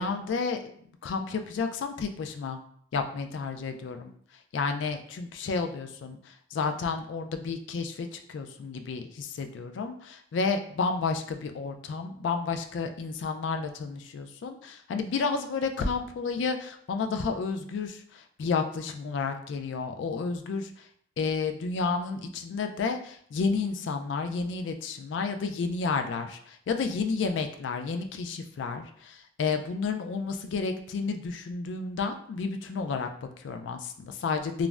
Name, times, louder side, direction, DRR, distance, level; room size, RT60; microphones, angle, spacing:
voice 1, 0.0-2.6 2.9-4.1 4.5-20.7 21.2-34.7, left 4 dB, 65° left, 6 dB, 0.3 m, -31 dB
2.4 x 2.1 x 3.2 m, 0.62 s
head